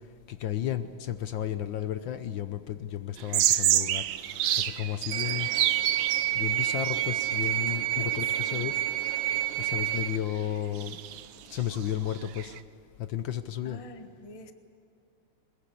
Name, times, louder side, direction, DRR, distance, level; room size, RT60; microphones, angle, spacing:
voice 1, 0.3-4.1 4.6-5.6 6.3-8.7 9.6-11.0 11.5-12.5 13.0-13.8, left 11 dB, 65° left, 11 dB, 1.5 m, -33 dB
sound 1, 3.2-7.8 8.1-8.6 10.0-10.1 10.4-10.5 10.7-12.6, right 12 dB, 70° right, 1.4 m, -29 dB
sound 2, 5.1-10.2, right 16 dB, 90° right, 1.7 m, -29 dB
voice 2, 7.7-8.6 13.6-14.5, left 2 dB, 20° left, 7 dB, 1.0 m, -47 dB
22.5 x 21.0 x 8.5 m, 2.6 s
omnidirectional pair, 2.4 m